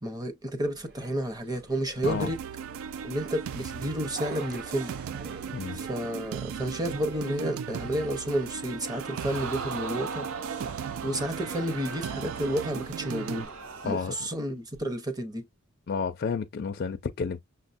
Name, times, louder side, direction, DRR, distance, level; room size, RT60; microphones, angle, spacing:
voice 1, 0.0-2.4 3.0-4.9 5.7-10.3 11.0-13.5 13.8-15.5, equal, 20° right, 0.7 m, -31 dB
sound 1, 0.6-14.0, right 3 dB, 50° right, 0.9 m, -47 dB
sound 2, 2.0-13.5, right 7 dB, 75° right, 0.3 m, -37 dB
voice 2, 5.5-5.9 13.9-14.1 15.9-17.4, left 5 dB, 50° left, 0.4 m, -31 dB
Crowd, 8.8-14.3 14.7-14.8, right 5 dB, 90° right, 0.7 m, -39 dB
6.0 x 2.2 x 2.5 m
head